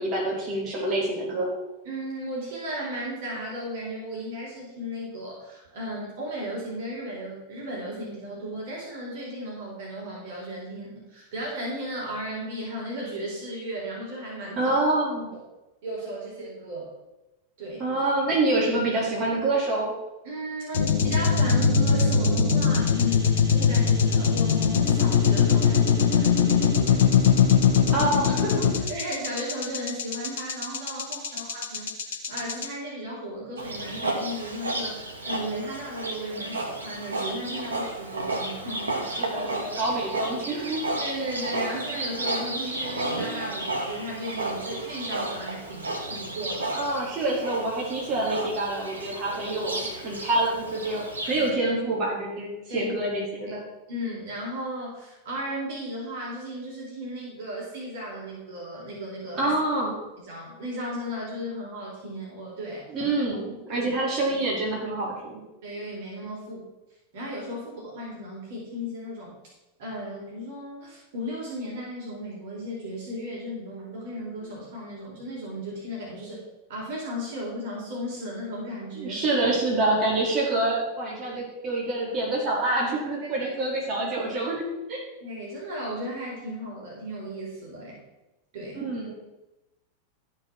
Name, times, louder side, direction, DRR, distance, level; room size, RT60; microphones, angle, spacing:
voice 1, 0.0-1.5 14.6-15.3 17.8-19.9 27.9-28.9 39.2-40.9 46.7-53.6 59.4-60.0 62.9-65.4 79.0-84.6 84.9-85.0 88.8-89.1, right 2 dB, 30° right, -4 dB, 4.3 m, -26 dB
voice 2, 1.8-14.8 15.8-16.9 17.6-17.8 20.2-27.0 28.9-39.0 41.0-46.7 51.3-51.5 52.7-52.9 53.5-53.6 53.9-59.5 60.2-62.8 63.7-63.9 64.3-64.4 65.6-66.6 67.1-69.3 69.8-76.4 76.7-79.2 83.4-83.5 84.0-84.1 85.2-88.0 88.5-88.9, equal, 55° right, -3 dB, 4.2 m, -35 dB
sound 1, 20.7-32.7, left 6 dB, 60° left, 1.5 m, -21 dB
Livestock farm animals working animals, 33.6-51.5, right 2 dB, 75° right, 1.8 m, -32 dB
14.0 x 5.3 x 6.1 m, 0.98 s
figure-of-eight pair, 90°, 0 cm